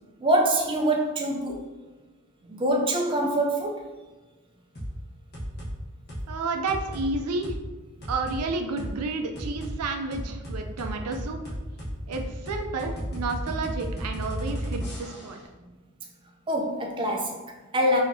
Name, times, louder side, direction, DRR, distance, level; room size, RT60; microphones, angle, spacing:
voice 1, 0.2-1.6 2.4-3.8 16.5-18.0, right 1 dB, 20° right, 0 dB, 0.4 m, -25 dB
sound 1, 4.7-4.9 5.3-5.7 6.1-6.3 6.7-7.1 7.4-7.6 8.0-8.4 8.8-8.9 9.3-9.7 10.1-15.4, equal, 45° left, 1.2 m, -34 dB
voice 2, 6.3-7.6 8.1-11.5 12.1-15.4, right 3 dB, 85° right, 4 dB, 0.4 m, -31 dB
4.3 x 2.8 x 2.6 m, 1.2 s
head